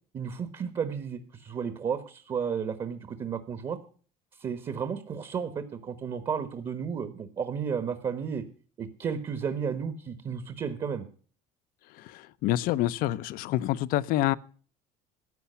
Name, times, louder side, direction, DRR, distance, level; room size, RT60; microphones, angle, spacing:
voice 1, 0.1-3.8 4.4-8.4 8.8-11.1, right 6 dB, 35° right, 1.3 m, -33 dB
voice 2, 12.0-14.3, left 14 dB, 65° left, 0.7 m, -27 dB
14.5 x 9.2 x 5.6 m
cardioid pair, 125°, 16 cm